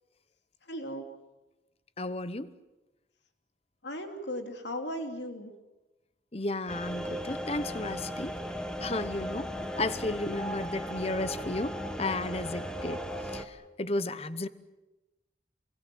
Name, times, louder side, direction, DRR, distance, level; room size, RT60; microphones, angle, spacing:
voice 1, 0.7-1.0 3.8-5.5, equal, 85° left, 5 dB, 3.0 m, -36 dB
voice 2, 2.0-2.5 6.3-8.4 8.8-14.5, left 2 dB, 35° left, 14 dB, 0.9 m, -33 dB
sound 1, 6.7-13.4, equal, 5° left, 1.5 m, -36 dB
27.5 x 22.5 x 7.7 m, 1.0 s
head